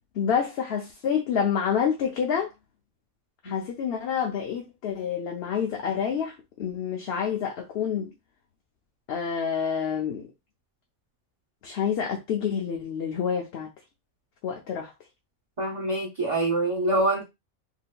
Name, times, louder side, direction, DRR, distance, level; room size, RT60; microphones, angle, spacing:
voice 1, 0.1-2.5 3.4-8.1 9.1-10.3 11.6-13.7 14.4-14.9, left 7 dB, 65° left, 0.8 m, -28 dB
voice 2, 15.6-17.2, right 2 dB, 30° right, 0.8 m, -25 dB
3.7 x 2.6 x 2.2 m
omnidirectional pair, 1.2 m